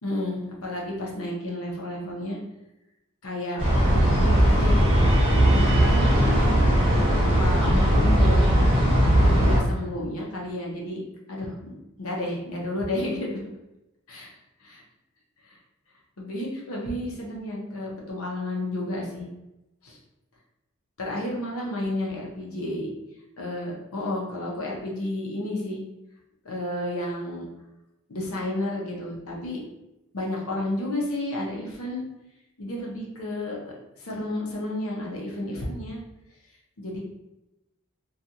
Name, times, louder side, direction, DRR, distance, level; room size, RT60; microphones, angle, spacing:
voice 1, 0.0-2.4 3.2-5.1 5.5-6.8 7.4-8.7 9.2-11.0 11.3-13.3 14.1-14.3 14.6-14.8 15.4-15.6 16.2-19.3 19.8-20.0 21.0-22.9 23.4-25.8 26.4-27.5 28.1-29.6 30.1-32.0 32.6-36.0 36.8-37.0, left 1 dB, 90° left, -2 dB, 0.7 m, -31 dB
sound 1, 3.6-9.6, equal, 25° right, 0.7 m, -19 dB
2.4 x 2.3 x 2.8 m, 0.94 s
head